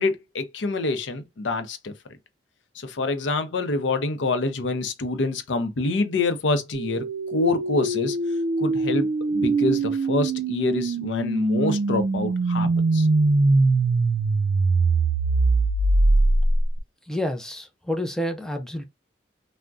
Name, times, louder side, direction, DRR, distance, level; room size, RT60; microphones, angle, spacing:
voice 1, 0.0-1.9 2.8-8.2 8.6-13.1, left 3 dB, 85° left, 0.6 m, -26 dB
sound 1, 6.7-16.8, right 3 dB, 60° right, 0.4 m, -22 dB
voice 2, 17.1-18.8, left 1 dB, 5° left, 0.4 m, -29 dB
3.4 x 2.1 x 2.4 m
head